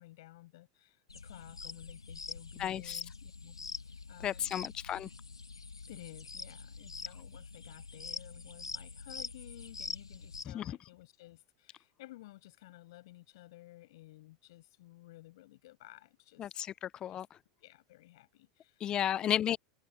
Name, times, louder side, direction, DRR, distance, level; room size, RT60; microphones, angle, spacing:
voice 1, 0.0-3.6 3.9-4.7 5.9-16.6 17.1-19.3, left 17 dB, 65° left, 7.5 m, -54 dB
sound 1, 1.1-10.4, left 4 dB, 90° left, 2.1 m, -45 dB
voice 2, 2.6-3.0 4.2-5.1 10.5-10.8 16.4-17.3 18.8-19.6, left 10 dB, 35° left, 0.4 m, -33 dB
figure-of-eight pair, 85°, 3 cm